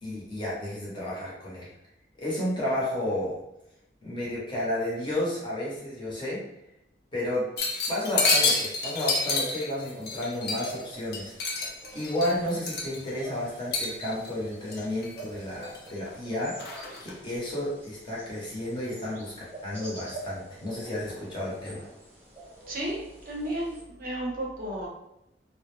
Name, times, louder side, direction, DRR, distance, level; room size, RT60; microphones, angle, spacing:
voice 1, 0.0-1.7 2.2-3.4 4.0-6.4 7.1-7.5 7.9-16.5 17.0-21.8, left 1 dB, 25° left, -7 dB, 0.8 m, -32 dB
sound 1, 7.6-10.8 11.1-13.2 13.7-14.3 14.7-15.2 15.6-16.1 16.6-17.1, left 3 dB, 60° left, 0.5 m, -29 dB
sound 2, 10.6-23.8, right 2 dB, 10° right, 0.9 m, -46 dB
voice 2, 22.7-23.0 23.3-24.9, right 1 dB, 50° right, -2 dB, 0.6 m, -33 dB
2.3 x 2.0 x 3.1 m, 0.84 s
head